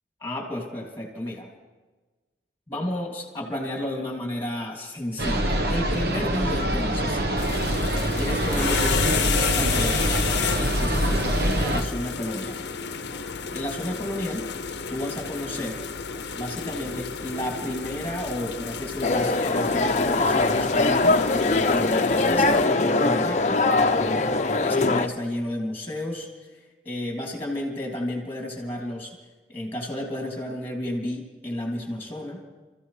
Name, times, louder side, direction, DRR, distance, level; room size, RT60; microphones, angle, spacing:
voice 1, 0.2-1.5 2.7-7.2 8.1-10.3 10.6-12.6 13.5-14.5 14.9-15.8 16.3-21.2 21.6-23.6 24.6-29.1 29.5-32.4, left 1 dB, 10° left, 0 dB, 2.9 m, -32 dB
sound 1, 5.2-11.8, right 1 dB, 60° right, 1.1 m, -25 dB
sound 2, 7.4-22.7, left 6 dB, 75° left, 0.7 m, -31 dB
sound 3, 19.0-25.1, left 3 dB, 40° left, 0.7 m, -22 dB
29.5 x 14.5 x 3.3 m, 1.3 s
head